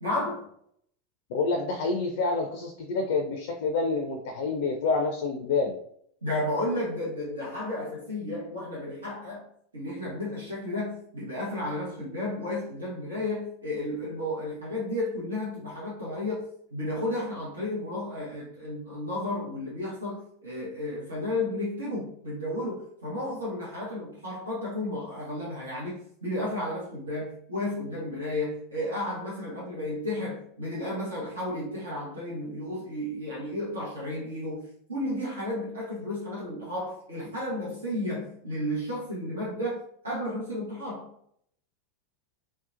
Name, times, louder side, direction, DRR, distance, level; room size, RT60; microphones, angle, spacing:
voice 1, 0.0-0.4 6.2-9.5 9.7-41.1, left 1 dB, 80° right, -6 dB, 0.8 m, -33 dB
voice 2, 1.3-5.7, left 3 dB, 60° left, 4 dB, 0.4 m, -28 dB
2.7 x 2.1 x 2.4 m, 0.67 s
figure-of-eight pair, 85°, 0 cm